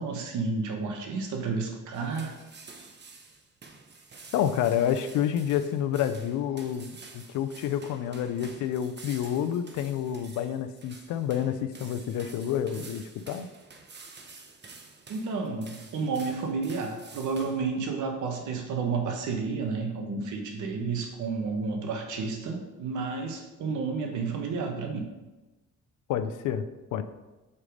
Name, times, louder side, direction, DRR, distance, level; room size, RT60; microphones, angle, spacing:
voice 1, 0.0-2.3 15.1-25.0, right 4 dB, 80° right, 4 dB, 1.2 m, -31 dB
sound 1, 1.9-17.6, right 4 dB, 35° right, 1.0 m, -49 dB
voice 2, 4.3-13.5 26.1-26.6 26.9-27.0, left 9 dB, 90° left, 11 dB, 0.5 m, -29 dB
5.6 x 4.9 x 4.9 m, 1.1 s
cardioid pair, 90°, 30 cm